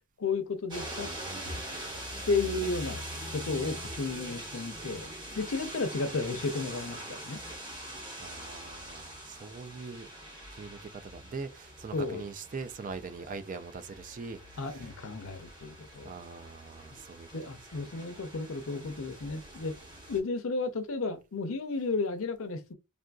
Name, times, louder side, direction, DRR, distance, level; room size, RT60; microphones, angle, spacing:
voice 1, 0.2-1.1 2.3-3.0 3.3-5.1 5.3-7.4 11.9-12.2 14.6-16.1 16.9-17.0 17.3-19.8 20.1-22.7, left 3 dB, 75° left, 0.6 m, -33 dB
sound 1, 0.7-20.2, right 1 dB, 20° right, 1.0 m, -43 dB
voice 2, 8.2-10.1 10.5-14.9 16.0-17.8, right 4 dB, 40° right, 0.3 m, -42 dB
3.6 x 2.5 x 2.3 m
head